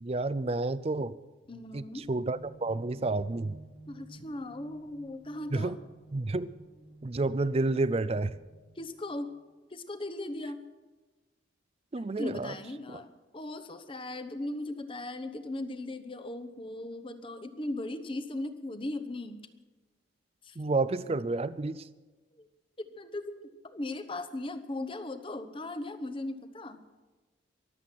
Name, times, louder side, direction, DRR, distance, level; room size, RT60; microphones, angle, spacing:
voice 1, 0.0-1.2 1.7-3.6 5.5-5.8 6.1-6.5 7.0-8.4 11.9-12.5 12.9-13.0 20.6-21.9, right 2 dB, 30° right, 16 dB, 0.5 m, -30 dB
sound 1, 1.4-9.2, right 1 dB, 50° left, 4.9 m, -54 dB
voice 2, 1.5-2.1 3.9-5.8 8.7-9.3 9.7-10.6 12.2-19.5 20.4-20.6 22.3-22.5 22.8-23.4 23.6-26.8, left 2 dB, 25° left, 10 dB, 0.9 m, -38 dB
23.5 x 7.9 x 5.9 m, 1.2 s
head